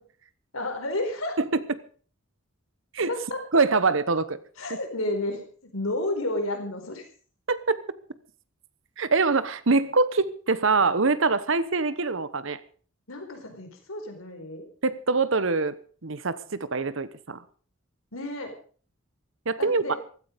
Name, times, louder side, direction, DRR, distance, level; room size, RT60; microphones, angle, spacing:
voice 1, 0.5-1.3 3.1-3.4 4.6-5.4 5.7-7.0 13.1-14.7 18.1-18.5 19.6-20.0, left 1 dB, 80° left, 4 dB, 4.5 m, -31 dB
voice 2, 3.5-4.4 4.7-4.8 7.5-7.8 9.0-12.6 14.8-15.8 16.0-17.4 19.5-19.8, right 4 dB, 65° right, 15 dB, 1.0 m, -24 dB
15.5 x 14.0 x 5.2 m, 0.43 s
head